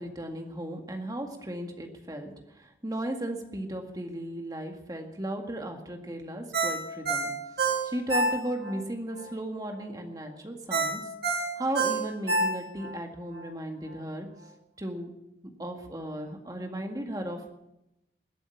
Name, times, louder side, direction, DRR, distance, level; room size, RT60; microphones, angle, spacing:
voice 1, 0.0-7.3 7.8-11.0 11.3-14.3 14.8-15.1 15.6-17.5, right 1 dB, 20° right, 3 dB, 1.9 m, -35 dB
Ringtone, 6.5-8.8 9.2-9.3 10.7-12.9 13.3-13.4, right 3 dB, 65° right, 3.1 m, -27 dB
21.0 x 8.0 x 7.3 m, 0.88 s
head